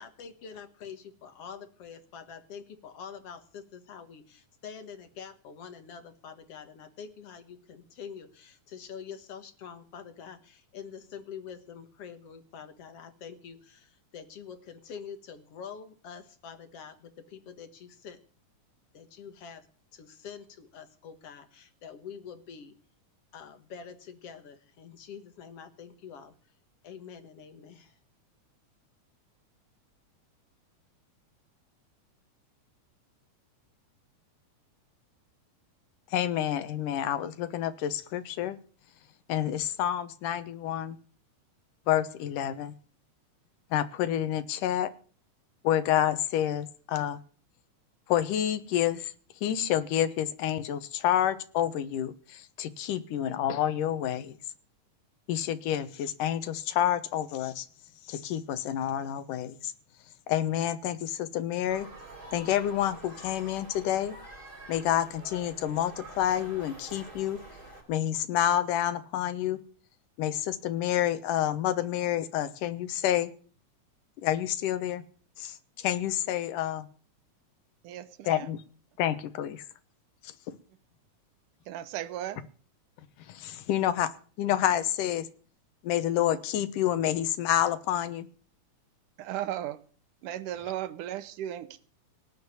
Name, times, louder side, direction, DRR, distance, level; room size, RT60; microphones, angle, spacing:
voice 1, 0.0-18.2 18.9-19.7 19.9-22.8 23.3-26.3 26.8-27.9, left 7 dB, 55° left, 10 dB, 2.2 m, -46 dB
voice 2, 36.1-38.6 39.3-41.0 41.9-42.7 43.7-44.9 45.6-47.2 48.1-49.1 49.4-54.4 55.3-57.7 58.1-59.7 60.3-61.9 62.3-64.2 64.7-67.4 67.9-69.6 70.2-73.3 74.2-75.0 75.4-76.9 78.3-78.6 79.0-79.6 80.2-80.5 83.2-84.1 84.4-85.3 85.8-88.3, left 11 dB, 80° left, 13 dB, 2.7 m, -28 dB
sound 1, 61.7-67.8, right 2 dB, 30° right, 5.3 m, -47 dB
voice 3, 77.8-78.5 81.7-82.4 89.2-89.8 90.2-91.8, right 12 dB, 80° right, 15 dB, 2.5 m, -36 dB
18.5 x 6.5 x 9.9 m, 0.42 s
omnidirectional pair, 3.7 m